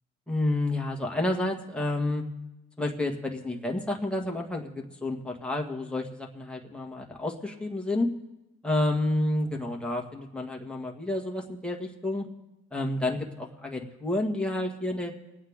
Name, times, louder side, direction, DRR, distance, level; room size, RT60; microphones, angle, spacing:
voice 1, 0.3-2.2 2.8-8.1 8.6-12.3 12.7-15.1, left 1 dB, 5° left, 0 dB, 1.7 m, -30 dB
21.5 x 8.8 x 3.7 m, 0.96 s
cardioid pair, 90°, 30 cm